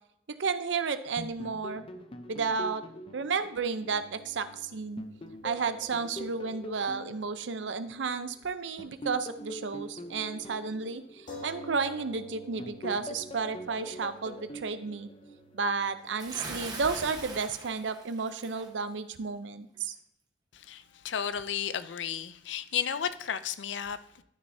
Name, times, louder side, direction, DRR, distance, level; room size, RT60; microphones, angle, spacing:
voice 1, 0.3-1.8 2.3-2.8 3.1-5.0 5.4-15.1 15.5-19.9, right 5 dB, 85° right, 11 dB, 0.6 m, -32 dB
sound 1, 1.2-4.5 5.0-8.2 8.8-12.1 12.6-15.8, equal, 30° left, 0.6 m, -44 dB
sound 2, 3.8-7.7 7.9-8.1 11.3-16.5, equal, 50° left, 1.6 m, -50 dB
Bathtub (filling or washing) / Splash splatter, 16.2-18.7, right 3 dB, 25° right, 1.1 m, -41 dB
voice 2, 20.5-24.0, left 8 dB, 90° left, 13 dB, 0.5 m, -33 dB
12.5 x 6.4 x 2.7 m, 0.77 s
head